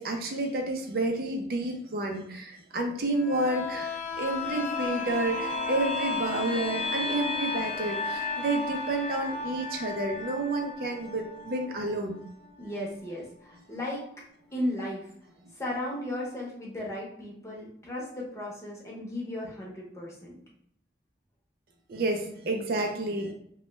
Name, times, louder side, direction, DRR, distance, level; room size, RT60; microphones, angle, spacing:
voice 1, 0.0-12.2 21.9-23.3, right 2 dB, 55° right, 3 dB, 0.4 m, -30 dB
sound 1, 3.1-12.7 13.1-13.2, left 3 dB, 40° left, 0.4 m, -34 dB
voice 2, 12.6-14.0 14.5-15.1 15.5-20.3, left 1 dB, 15° left, -4 dB, 0.8 m, -35 dB
3.0 x 2.2 x 3.0 m, 0.71 s
head